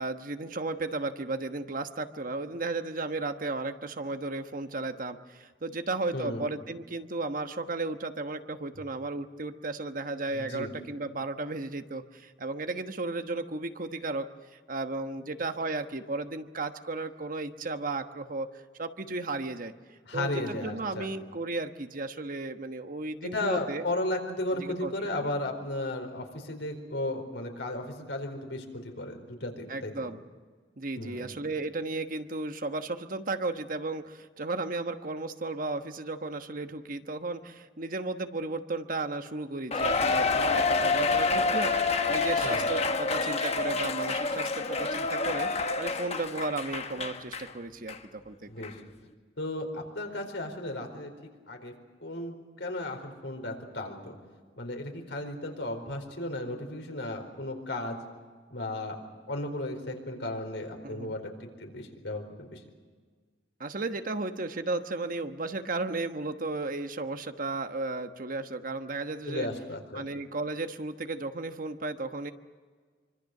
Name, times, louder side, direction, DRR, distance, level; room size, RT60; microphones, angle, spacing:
voice 1, 0.0-14.3 14.5-23.8 24.5-24.9 25.2-25.3 29.7-30.2 30.8-48.5 60.8-61.2 63.6-69.5 69.9-72.3, right 2 dB, 50° right, 8 dB, 1.2 m, -34 dB
voice 2, 6.1-6.4 10.3-10.7 20.1-21.1 23.3-30.1 31.0-31.2 42.4-42.7 48.5-48.7 49.4-51.1 51.5-51.7 52.0-54.1 54.6-58.0 58.5-59.0 59.3-62.6 69.3-70.0, left 1 dB, 85° left, 4 dB, 4.5 m, -35 dB
Cheering, 39.7-47.5 47.9-48.0 48.6-48.7, left 3 dB, 35° left, 1.1 m, -28 dB
25.0 x 25.0 x 6.7 m, 1.5 s
head